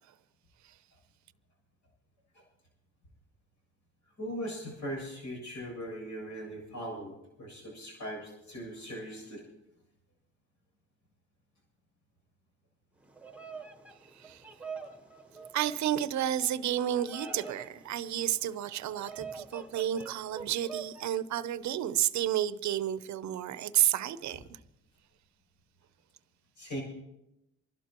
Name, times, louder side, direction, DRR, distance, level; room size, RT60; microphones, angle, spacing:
voice 1, 4.2-7.1 7.4-9.4 26.6-26.8, equal, 75° left, 7.6 m, -39 dB
Bird vocalization bird call bird song, 13.0-21.1, right 5 dB, 5° right, 1.2 m, -46 dB
voice 2, 15.5-24.6, right 11 dB, 70° right, 0.7 m, -31 dB
28.0 x 12.0 x 3.0 m
cardioid pair, 90°, 30 cm